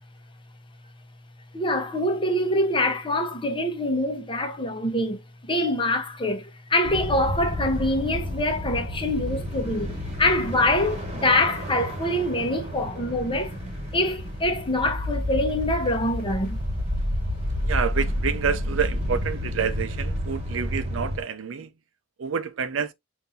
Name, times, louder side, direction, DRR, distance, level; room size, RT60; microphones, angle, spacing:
voice 1, 1.5-5.2 5.5-13.6 13.9-16.6, left 1 dB, 25° left, 0.9 m, -25 dB
sound 1, 6.8-21.2, equal, 35° right, 1.6 m, -30 dB
voice 2, 17.6-21.7 22.2-22.9, right 6 dB, 90° right, 0.5 m, -28 dB
5.4 x 2.7 x 2.6 m
head